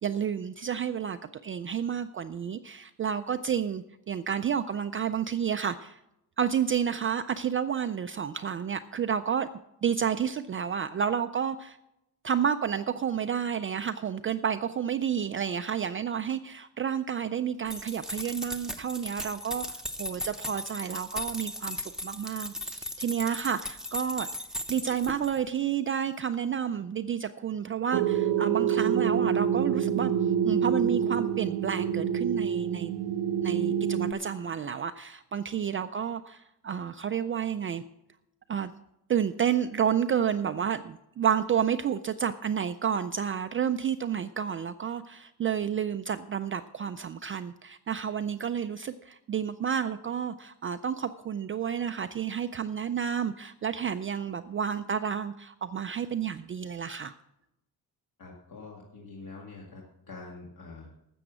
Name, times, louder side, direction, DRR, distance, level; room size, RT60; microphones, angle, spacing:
voice 1, 0.0-6.0 6.4-9.5 9.8-11.8 12.2-24.3 24.7-32.9 33.4-37.8 38.5-38.7 39.1-57.1, right 8 dB, 35° right, 9 dB, 0.4 m, -30 dB
sound 1, 17.7-25.4, left 1 dB, ahead, 0.9 m, -37 dB
sound 2, 27.9-34.1, right 8 dB, 90° right, 1.0 m, -27 dB
voice 2, 58.2-59.8 60.1-60.9, left 3 dB, 55° left, -2 dB, 2.1 m, -45 dB
13.0 x 7.8 x 6.2 m, 0.86 s
cardioid pair, 145°, 39 cm